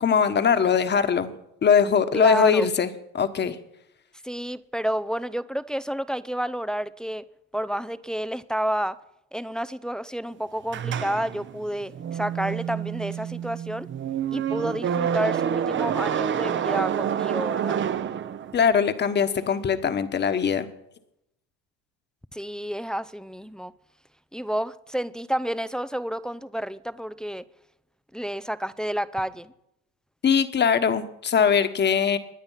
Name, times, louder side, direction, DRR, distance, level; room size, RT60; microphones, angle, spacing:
voice 1, 0.0-1.3 1.6-3.6 18.5-20.7 30.2-32.2, left 6 dB, 30° left, 1.4 m, -21 dB
voice 2, 2.1-2.7 4.2-7.2 7.5-9.0 9.3-13.9 14.3-17.8 22.3-23.7 24.3-27.4 28.1-29.5, equal, ahead, 0.5 m, -30 dB
sound 1, 10.7-18.8, right 8 dB, 35° right, 0.8 m, -28 dB
23.0 x 9.5 x 5.7 m
supercardioid pair, 95°, 34 cm